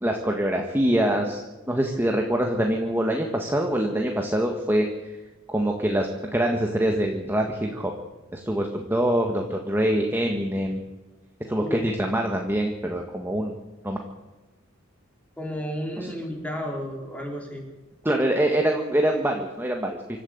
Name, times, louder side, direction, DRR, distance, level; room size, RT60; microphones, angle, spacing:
voice 1, 0.0-1.4 1.7-5.2 5.5-7.9 8.3-10.8 11.5-13.5 13.8-14.0 16.0-16.1 18.0-20.0, right 1 dB, 10° right, 2 dB, 1.5 m, -24 dB
voice 2, 15.4-17.7, equal, 5° left, 0 dB, 4.3 m, -32 dB
25.5 x 12.5 x 8.0 m, 1.1 s
head